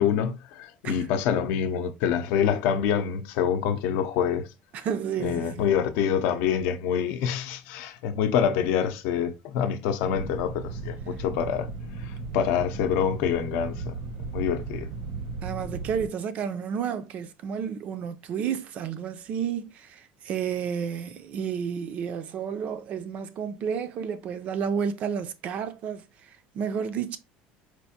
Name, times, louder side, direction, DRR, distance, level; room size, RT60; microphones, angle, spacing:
voice 1, 0.0-4.5 5.2-11.7 12.0-14.0 14.3-14.9, left 8 dB, 70° left, 0.6 m, -26 dB
voice 2, 4.7-5.7 15.4-27.2, right 7 dB, 40° right, 0.4 m, -31 dB
sound 1, 10.0-16.1, right 4 dB, 75° right, 0.9 m, -36 dB
4.5 x 2.5 x 2.7 m
cardioid pair, 155°, 4 cm